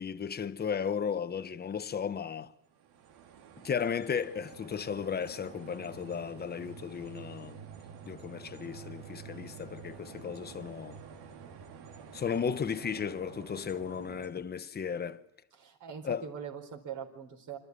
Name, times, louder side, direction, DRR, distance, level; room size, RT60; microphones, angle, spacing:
voice 1, 0.0-2.5 3.6-7.6 8.0-11.0 12.1-15.2 16.0-16.2, left 7 dB, 25° left, 1.1 m, -35 dB
sound 1, 2.7-14.3, right 7 dB, 85° right, 3.1 m, -49 dB
voice 2, 15.5-17.6, right 7 dB, 50° right, 4.6 m, -42 dB
26.5 x 14.0 x 9.6 m
cardioid pair, 135°, 40 cm